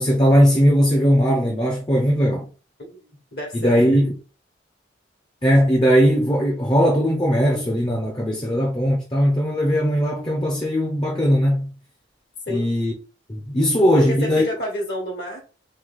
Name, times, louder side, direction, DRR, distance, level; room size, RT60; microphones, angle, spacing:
voice 1, 0.0-2.5 3.5-4.1 5.4-11.7 12.5-12.9 13.3-14.4, equal, 25° left, 0.7 m, -19 dB
voice 2, 3.0-3.8 12.5-12.8 13.9-15.4, left 1 dB, 60° left, 1.4 m, -29 dB
3.3 x 3.3 x 3.7 m
head